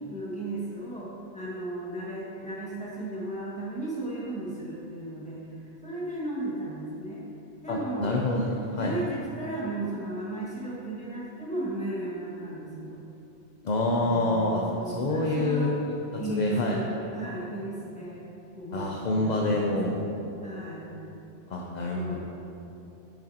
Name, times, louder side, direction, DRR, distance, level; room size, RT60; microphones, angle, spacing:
voice 1, 0.1-5.4 5.8-7.2 7.6-8.2 8.8-13.0 13.9-15.7 16.2-18.3 18.5-19.8 20.4-20.9 21.9-22.2, right 2 dB, 5° left, -8 dB, 1.7 m, -35 dB
voice 2, 7.7-8.9 13.6-15.7 16.1-16.8 18.7-20.0 21.5-22.2, left 2 dB, 45° left, -1 dB, 0.6 m, -27 dB
10.0 x 6.4 x 2.9 m, 2.9 s
omnidirectional pair, 1.2 m